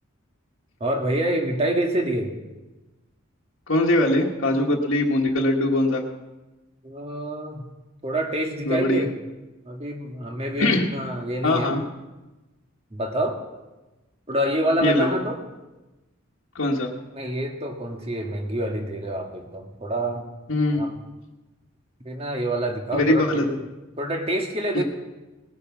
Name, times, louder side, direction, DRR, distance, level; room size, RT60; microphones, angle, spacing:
voice 1, 0.8-2.3 6.8-7.6 8.0-9.1 9.7-11.8 12.9-13.4 14.3-15.4 17.1-20.2 20.7-21.0 22.1-23.5 24.0-24.8, right 1 dB, 30° right, 3 dB, 1.7 m, -27 dB
voice 2, 3.7-6.0 8.6-9.0 10.6-10.8 11.4-11.8 14.8-15.1 16.5-16.9 20.5-20.9 22.9-23.6 24.7-24.8, left 1 dB, 70° left, -3 dB, 1.5 m, -21 dB
19.5 x 8.3 x 6.1 m, 1.1 s
head